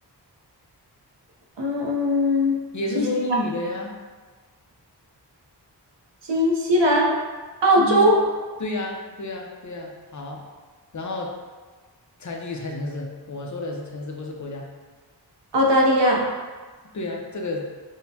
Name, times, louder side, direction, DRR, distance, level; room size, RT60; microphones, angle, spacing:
voice 1, 1.6-2.6 2.9-3.0 6.3-7.1 7.6-8.2 15.5-16.2, equal, 80° right, -1 dB, 0.8 m, -19 dB
voice 2, 2.7-3.9 7.8-8.1 8.6-10.4 10.9-11.3 12.2-14.7 16.9-17.7, left 2 dB, 45° left, 0 dB, 0.6 m, -30 dB
6.4 x 2.1 x 2.8 m, 1.4 s
wide cardioid pair, 100°, 42 cm